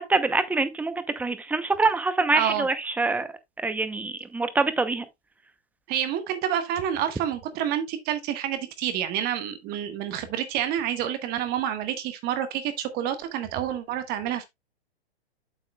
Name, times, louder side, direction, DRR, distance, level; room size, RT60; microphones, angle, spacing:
voice 1, 0.0-3.3 3.6-5.0, right 3 dB, 5° right, 0.6 m, -25 dB
voice 2, 2.3-2.7 5.9-14.4, right 10 dB, 30° right, 1.3 m, -28 dB
8.2 x 7.9 x 2.2 m
hypercardioid pair, 120°, 32 cm